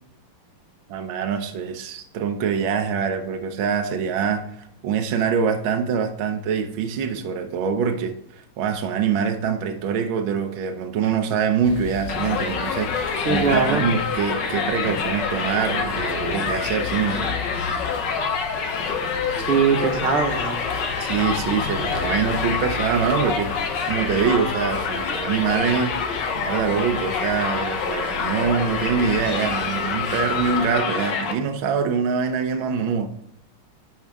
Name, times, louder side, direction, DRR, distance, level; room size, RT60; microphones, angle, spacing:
voice 1, 0.9-17.4 21.0-26.0 26.4-33.1, right 6 dB, 70° right, 5 dB, 1.6 m, -24 dB
sound 1, 11.6-30.8, left 7 dB, 80° left, 1.5 m, -37 dB
Crowd, 12.1-31.3, left 5 dB, 60° left, 1.6 m, -26 dB
voice 2, 13.3-13.9 19.4-20.6 22.0-22.2, right 5 dB, 90° right, 3 dB, 2.2 m, -22 dB
10.5 x 5.7 x 3.5 m, 0.79 s
omnidirectional pair, 2.4 m